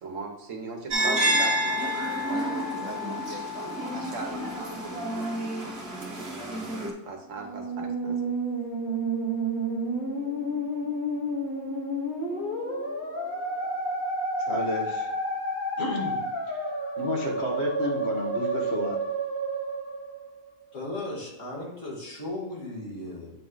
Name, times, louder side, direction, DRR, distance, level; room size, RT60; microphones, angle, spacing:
voice 1, 0.0-5.8 7.0-8.3, right 3 dB, 90° right, 3 dB, 1.4 m, -39 dB
sound 1, 0.9-6.9, equal, 55° right, 1.3 m, -29 dB
Musical instrument, 7.3-20.7, right 1 dB, 40° left, 1.4 m, -30 dB
voice 2, 14.4-15.1 15.8-16.7 17.0-19.0, left 1 dB, 60° left, 0 dB, 1.5 m, -31 dB
voice 3, 20.7-23.3, left 2 dB, 80° left, -4 dB, 2.2 m, -36 dB
8.4 x 3.0 x 3.8 m, 0.98 s
omnidirectional pair, 1.3 m